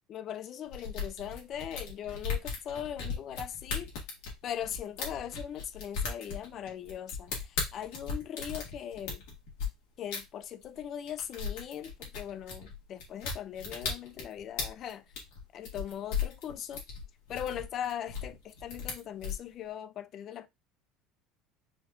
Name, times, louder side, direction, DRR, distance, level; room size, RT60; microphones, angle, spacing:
voice 1, 0.1-3.9 4.4-9.2 10.0-15.0 15.5-16.8 17.3-20.5, left 9 dB, 45° left, 0.4 m, -40 dB
sound 1, 0.7-9.7 10.1-10.2 10.6-10.8 11.1-19.4, left 5 dB, 80° left, 1.9 m, -36 dB
5.0 x 2.9 x 2.5 m
supercardioid pair, 125°, 0 cm